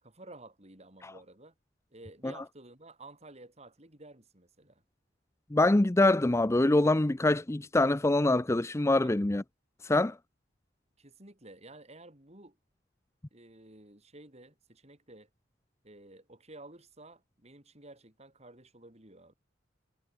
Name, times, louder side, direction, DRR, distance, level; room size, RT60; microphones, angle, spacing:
voice 1, 0.0-1.5 1.9-4.8 9.0-9.1 11.0-12.6 13.3-15.3 15.8-19.3, right 2 dB, 35° right, 5.5 m, -52 dB
voice 2, 5.5-9.4 9.8-10.2, left 2 dB, 15° left, 0.5 m, -24 dB
head